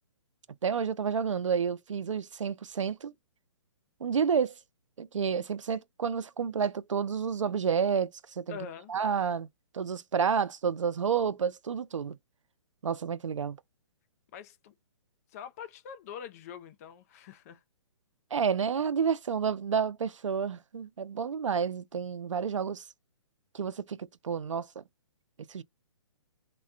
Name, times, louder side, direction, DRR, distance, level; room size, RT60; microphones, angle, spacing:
voice 1, 0.6-3.1 4.0-4.5 5.0-8.6 8.9-9.5 9.7-12.2 12.8-13.6 18.3-22.9 23.5-24.8 25.5-25.6, right 6 dB, 85° right, 0.5 m, -30 dB
voice 2, 8.5-8.9 14.3-14.7 15.3-17.6, left 8 dB, 30° left, 0.4 m, -44 dB
2.2 x 2.2 x 3.6 m
hypercardioid pair, 140°, 16 cm